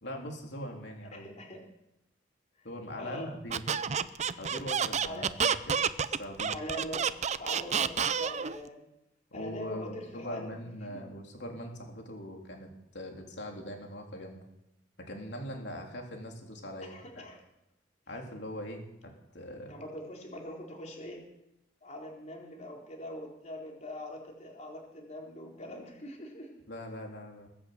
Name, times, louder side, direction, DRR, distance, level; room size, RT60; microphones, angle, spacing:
voice 1, 0.0-1.3 2.6-3.6 4.4-5.3 5.7-5.8 6.1-6.5 9.3-14.4 15.0-17.2 18.1-19.7 26.7-27.5, equal, 65° left, 1 dB, 3.6 m, -41 dB
voice 2, 1.1-1.6 3.0-3.3 5.0-5.3 6.4-8.9 9.3-10.5 10.9-11.0 16.8-17.4 19.7-21.2 21.8-26.5, left 1 dB, 40° left, -1 dB, 4.2 m, -43 dB
Squeak, 3.5-8.6, right 7 dB, 40° right, 0.6 m, -29 dB
21.0 x 8.5 x 8.0 m, 0.86 s
head